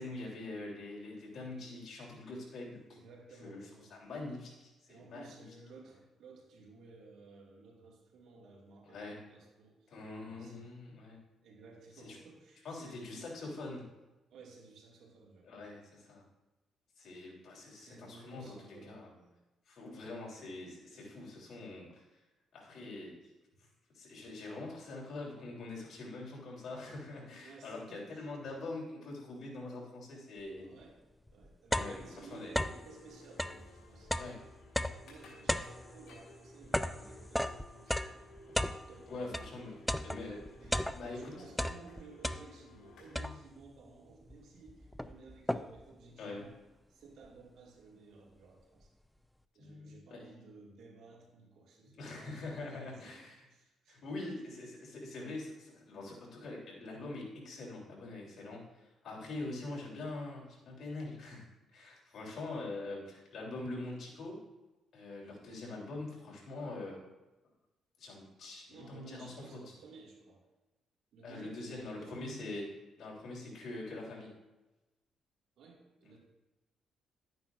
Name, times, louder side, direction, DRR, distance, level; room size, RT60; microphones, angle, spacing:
voice 1, 0.0-3.0 3.4-5.5 8.8-9.2 9.9-11.2 12.0-12.2 12.6-13.9 15.4-16.2 17.0-19.1 19.7-22.0 22.5-23.3 23.6-23.7 23.9-30.7 31.7-32.5 34.1-34.4 37.3-37.5 38.4-38.7 39.1-39.8 40.0-40.5 40.9-41.5 43.2-43.3 46.2-46.4 49.6-50.3 52.0-53.5 53.9-64.4 64.9-67.0 68.0-69.7 71.2-74.3, left 2 dB, 60° left, -3 dB, 3.2 m, -44 dB
voice 2, 2.9-3.9 4.9-9.9 10.2-10.6 11.4-13.4 14.3-15.7 17.8-19.4 23.6-23.7 24.5-24.7 27.4-28.4 30.6-31.0 31.3-34.4 34.7-38.4 38.9-39.8 40.6-46.6 46.9-48.9 49.5-52.5 52.8-54.0 68.7-70.4 71.1-72.4 75.6-76.2, right 3 dB, 80° right, -1 dB, 2.0 m, -56 dB
sound 1, 30.8-30.9 31.3-32.9 33.3-39.5 39.9-41.2 41.5-42.8 43.2-43.7 44.3-44.4 44.7-45.9, left 1 dB, 5° left, 0.4 m, -36 dB
sound 2, 31.7-43.2, left 2 dB, 80° left, 2.5 m, -58 dB
11.5 x 9.2 x 2.5 m, 1.1 s
cardioid pair, 90°, 0 cm